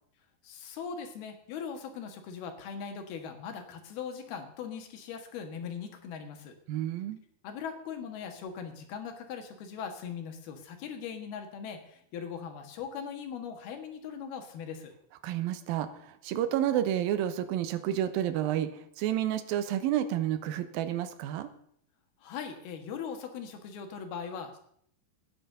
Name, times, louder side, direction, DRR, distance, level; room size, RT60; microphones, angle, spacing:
voice 1, 0.4-6.5 7.4-14.9 22.2-24.6, left 7 dB, 70° left, 6 dB, 3.4 m, -40 dB
voice 2, 6.7-7.2 15.2-18.7 19.0-21.5, right 11 dB, 75° right, 10 dB, 2.6 m, -30 dB
12.5 x 9.8 x 6.7 m, 0.68 s
omnidirectional pair, 4.6 m